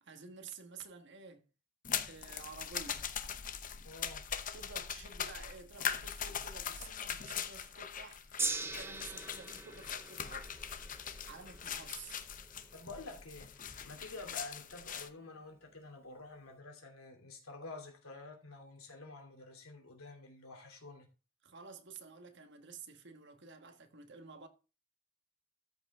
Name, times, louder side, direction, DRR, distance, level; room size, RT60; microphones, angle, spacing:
voice 1, 0.0-1.4 2.1-3.1 4.5-10.5 11.2-12.2 21.4-24.5, right 5 dB, 55° right, 1.3 m, -51 dB
sound 1, 1.8-15.1, left 8 dB, 40° left, 0.7 m, -41 dB
voice 2, 3.8-4.3 12.7-21.1, left 3 dB, 90° left, 2.8 m, -49 dB
Gong, 8.4-14.7 15.5-15.6, right 3 dB, 10° right, 0.7 m, -43 dB
13.5 x 5.5 x 3.6 m
head